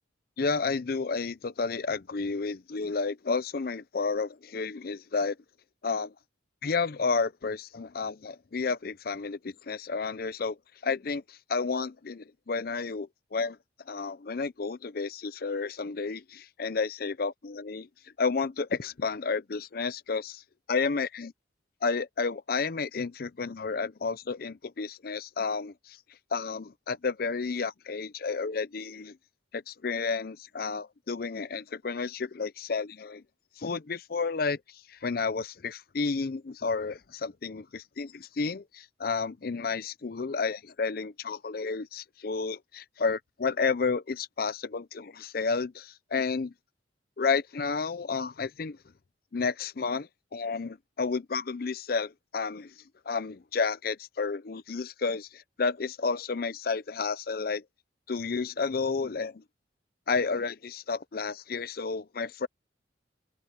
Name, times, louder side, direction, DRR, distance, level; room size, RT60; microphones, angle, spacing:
voice 1, 0.4-5.4 5.8-6.1 6.6-10.6 10.8-13.6 13.9-17.9 18.2-20.4 20.7-21.3 21.8-26.0 26.3-29.2 29.5-33.2 33.6-46.5 47.2-48.8 49.3-52.7 53.1-57.6 58.1-59.4 60.1-62.5, left 4 dB, 50° left, 0.5 m, -31 dB
open air
head